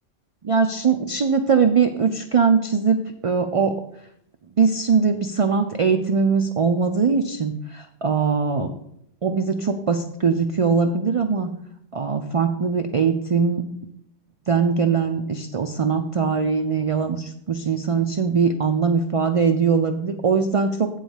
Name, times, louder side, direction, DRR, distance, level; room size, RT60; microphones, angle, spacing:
voice 1, 0.4-3.8 4.6-8.7 9.2-11.5 11.9-13.6 14.5-20.9, right 5 dB, 65° right, 6 dB, 0.3 m, -21 dB
9.1 x 3.8 x 7.1 m, 0.74 s
omnidirectional pair, 1.3 m